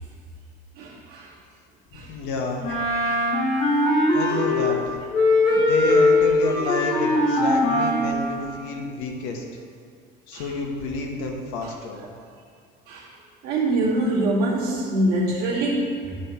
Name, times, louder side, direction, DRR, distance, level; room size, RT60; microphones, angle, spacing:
voice 1, 0.8-1.3 1.9-2.1 2.9-3.4 3.9-4.4 5.5-5.6 10.3-10.5 12.9-13.1 13.4-16.1, right 1 dB, 50° right, -6 dB, 2.5 m, -25 dB
voice 2, 1.9-2.7 4.1-5.0 5.6-9.4 10.3-12.0, left 3 dB, 80° left, 1 dB, 1.5 m, -29 dB
Wind instrument woodwind instrument, 2.6-4.8 5.1-8.2, left 2 dB, 35° left, 1.5 m, -20 dB
11.5 x 5.5 x 4.4 m, 2.2 s
cardioid pair, 165°, 20 cm